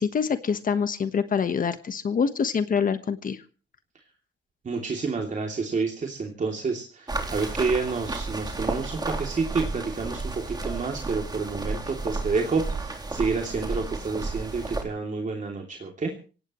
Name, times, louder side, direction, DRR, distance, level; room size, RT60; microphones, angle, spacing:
voice 1, 0.0-3.4, left 6 dB, 45° left, 10 dB, 1.3 m, -25 dB
voice 2, 4.6-16.1, right 4 dB, 40° right, 1 dB, 2.9 m, -29 dB
sound 1, 7.1-14.8, right 3 dB, 20° right, 3.4 m, -32 dB
25.0 x 17.5 x 3.1 m, 0.37 s
cardioid pair, 105°, 19 cm